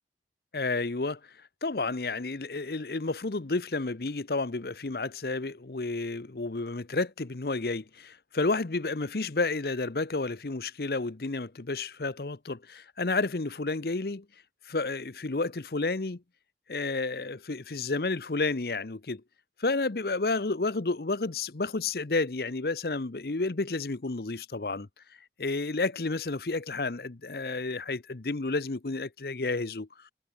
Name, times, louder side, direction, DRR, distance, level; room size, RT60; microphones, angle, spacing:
voice 1, 0.5-1.2 1.6-14.2 14.7-16.2 16.7-19.2 19.6-24.9 25.4-29.9, left 3 dB, 60° left, 0.8 m, -31 dB
head